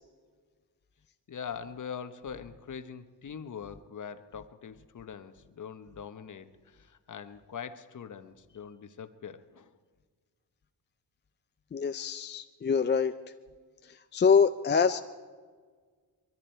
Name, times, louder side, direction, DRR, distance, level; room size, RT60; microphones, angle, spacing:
voice 1, 1.3-9.7, left 7 dB, 45° left, 10 dB, 1.0 m, -43 dB
voice 2, 11.7-13.1 14.1-15.0, left 6 dB, 25° left, 8 dB, 0.5 m, -25 dB
22.0 x 13.5 x 4.5 m, 1.5 s
cardioid pair, 90°, 41 cm